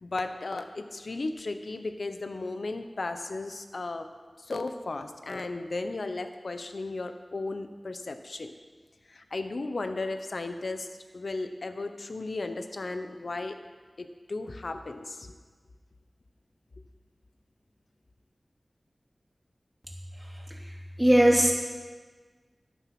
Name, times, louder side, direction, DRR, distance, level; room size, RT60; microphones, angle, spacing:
voice 1, 0.0-4.1 4.4-8.6 9.1-10.9 11.1-13.6 14.0-15.3, left 3 dB, 80° left, 8 dB, 0.9 m, -35 dB
voice 2, 21.0-21.5, right 1 dB, 15° right, -2 dB, 2.9 m, -18 dB
12.5 x 10.5 x 6.0 m, 1.4 s
wide cardioid pair, 55°, 0 cm